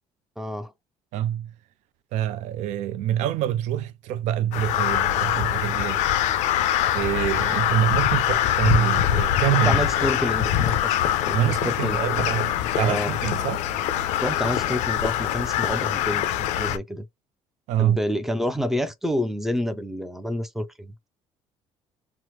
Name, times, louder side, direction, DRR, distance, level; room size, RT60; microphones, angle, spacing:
voice 1, 0.4-0.7 9.6-12.3 12.8-13.2 14.2-17.1 17.8-21.1, equal, 5° right, 0.4 m, -29 dB
voice 2, 1.1-1.5 2.1-6.1 6.9-9.8 11.3-12.5 12.8-13.7 17.7-18.0, right 11 dB, 80° right, 0.4 m, -25 dB
Crow, 4.5-16.8, left 11 dB, 85° left, 0.4 m, -24 dB
Musical instrument, 5.2-15.2, left 3 dB, 50° right, 0.9 m, -43 dB
2.9 x 2.0 x 3.1 m
cardioid pair, 160°, 12 cm